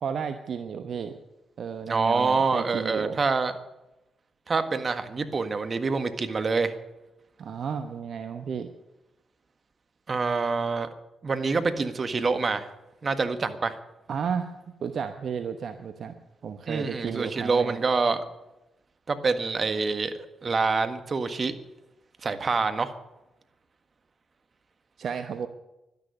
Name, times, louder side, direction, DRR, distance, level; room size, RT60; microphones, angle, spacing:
voice 1, 0.0-1.2 1.6-3.2 7.4-8.7 14.1-14.6 14.8-16.1 16.4-17.8 25.0-25.5, right 7 dB, 65° right, 7 dB, 1.0 m, -32 dB
voice 2, 1.9-3.5 4.5-6.7 10.1-10.9 11.2-12.7 13.0-13.7 16.7-18.2 19.1-20.1 20.4-21.5 22.2-22.9, right 4 dB, 45° right, 8 dB, 1.7 m, -26 dB
12.0 x 11.0 x 9.8 m, 0.95 s
hypercardioid pair, 40°, 0 cm